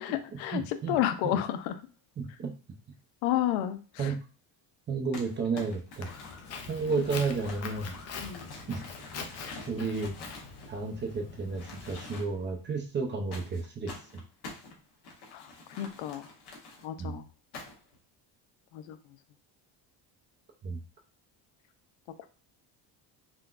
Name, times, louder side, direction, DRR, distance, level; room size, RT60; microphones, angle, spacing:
voice 1, 0.0-1.9 3.2-4.1 8.2-8.5 15.3-15.5 15.8-16.3 16.8-17.2 18.7-19.2, left 12 dB, 85° left, 10 dB, 0.5 m, -31 dB
voice 2, 0.5-1.0 1.2-1.4 2.2-2.5 4.0-4.2 4.9-6.1 6.7-7.9 8.7-8.8 9.7-10.2 10.7-13.9 17.0-17.2 20.6-20.8, right 4 dB, 25° right, 2 dB, 0.4 m, -32 dB
Crumpling crinkling, 5.1-11.2 11.5-12.5 13.3-16.8 17.5-18.0, left 3 dB, 55° left, 0.9 m, -47 dB
Walk footsteps, 6.0-12.1, left 5 dB, 35° left, 0.4 m, -43 dB
3.7 x 2.2 x 2.4 m, 0.35 s
cardioid pair, 140°, 45 cm